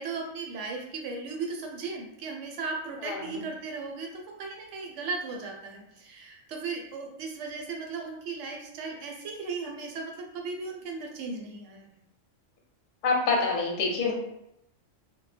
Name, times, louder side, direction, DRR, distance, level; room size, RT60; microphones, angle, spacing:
voice 1, 0.0-11.9, right 4 dB, 70° right, 1 dB, 0.9 m, -36 dB
voice 2, 3.0-3.4 13.0-14.1, left 4 dB, 55° left, -1 dB, 0.7 m, -26 dB
2.1 x 2.1 x 3.2 m, 0.79 s
omnidirectional pair, 1.3 m